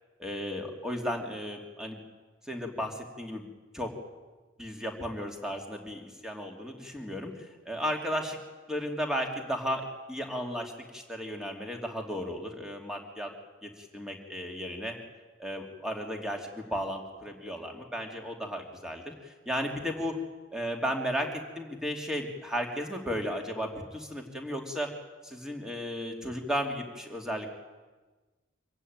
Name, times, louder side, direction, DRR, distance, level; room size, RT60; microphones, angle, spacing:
voice 1, 0.2-2.0 2.5-3.5 3.7-3.9 4.6-8.4 8.7-13.3 13.6-14.9 15.4-20.2 20.5-21.3 21.5-24.9 25.2-27.5, equal, 5° right, 2 dB, 2.7 m, -34 dB
25.5 x 15.0 x 9.5 m, 1.3 s
head